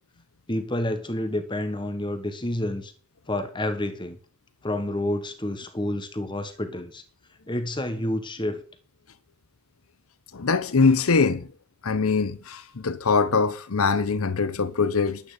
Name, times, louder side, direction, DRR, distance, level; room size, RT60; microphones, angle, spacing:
voice 1, 0.5-2.9 3.3-4.2 4.6-7.0 7.5-8.6, left 1 dB, 20° left, 1.3 m, -29 dB
voice 2, 10.3-11.5 11.8-15.2, left 4 dB, 75° left, 0.8 m, -22 dB
11.5 x 8.9 x 5.0 m
head